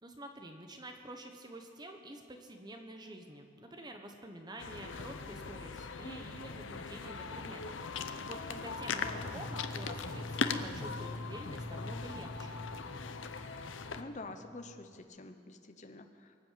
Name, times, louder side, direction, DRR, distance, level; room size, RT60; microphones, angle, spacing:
voice 1, 0.0-12.6, right 1 dB, 20° right, 4 dB, 1.1 m, -48 dB
sound 1, 4.6-14.0, left 5 dB, 75° left, 0.8 m, -40 dB
sound 2, 9.0-15.0, left 1 dB, 55° left, 1.1 m, -46 dB
voice 2, 14.0-16.4, left 2 dB, 40° left, 7 dB, 0.8 m, -47 dB
23.5 x 7.8 x 7.5 m, 2.4 s
head